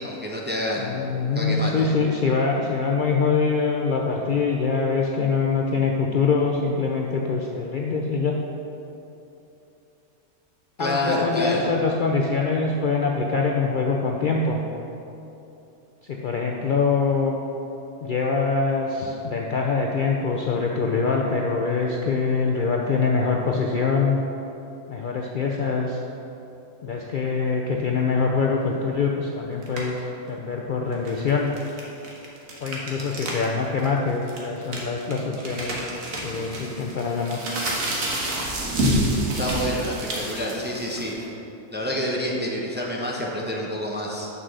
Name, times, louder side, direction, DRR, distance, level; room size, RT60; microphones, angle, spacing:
voice 1, 0.0-1.9 10.8-11.7 39.4-41.2 41.7-44.3, left 1 dB, 10° right, -3 dB, 0.6 m, -28 dB
voice 2, 0.8-8.4 10.8-14.6 16.0-17.4 18.0-24.2 24.9-26.0 26.8-31.5 32.6-35.8 36.2-37.4, left 4 dB, 80° left, 0 dB, 0.4 m, -24 dB
sound 1, 29.6-30.0 30.9-33.5 33.8-33.9 34.3-41.2, right 1 dB, 65° right, 1.6 m, -28 dB
6.4 x 5.4 x 6.1 m, 2.9 s
omnidirectional pair, 1.5 m